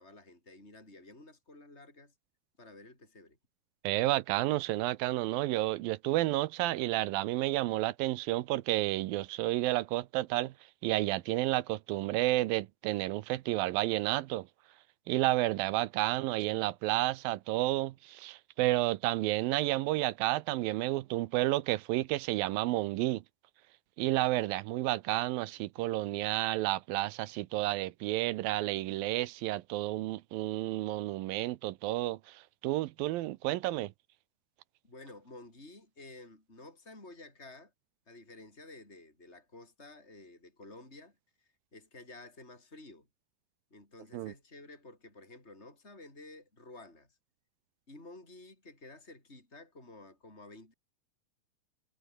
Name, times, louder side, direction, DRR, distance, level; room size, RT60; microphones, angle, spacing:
voice 1, 0.0-2.1 2.6-3.4 25.8-25.9 34.8-37.7 38.1-43.1 43.7-47.2 47.9-50.7, left 2 dB, 15° left, 8.2 m, -52 dB
voice 2, 3.8-10.5 10.8-14.5 15.1-23.2 24.0-33.9 44.1-44.3, right 17 dB, 80° right, 2.5 m, -31 dB
omnidirectional pair, 4.2 m